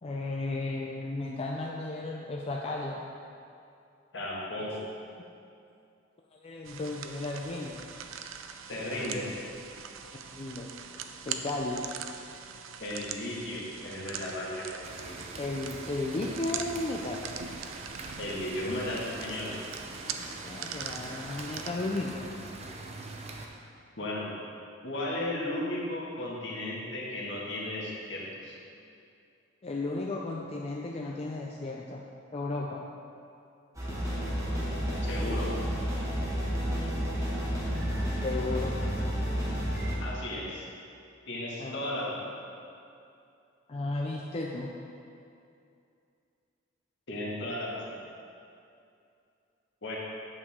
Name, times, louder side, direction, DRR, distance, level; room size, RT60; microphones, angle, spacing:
voice 1, 0.0-3.0 6.3-7.8 10.1-10.7 11.3-11.8 15.4-17.3 20.2-22.3 29.6-32.0 32.3-32.8 38.2-38.7 41.6-41.8 43.7-44.7, left 2 dB, 30° left, -2 dB, 0.5 m, -34 dB
voice 2, 4.1-4.8 8.7-9.4 12.8-14.7 15.1-15.2 18.2-19.5 24.0-24.3 24.8-28.5 35.0-35.5 40.0-40.6 41.3-42.4 47.1-48.0 49.8-49.9, left 1 dB, 65° left, -5 dB, 1.8 m, -35 dB
sound 1, 6.6-21.7, right 7 dB, 85° right, 0.5 m, -42 dB
northwest rain, 14.8-23.5, right 2 dB, 35° right, 0.7 m, -43 dB
sound 2, 33.8-39.9, equal, 15° right, 1.6 m, -31 dB
8.6 x 6.9 x 3.6 m, 2.5 s
head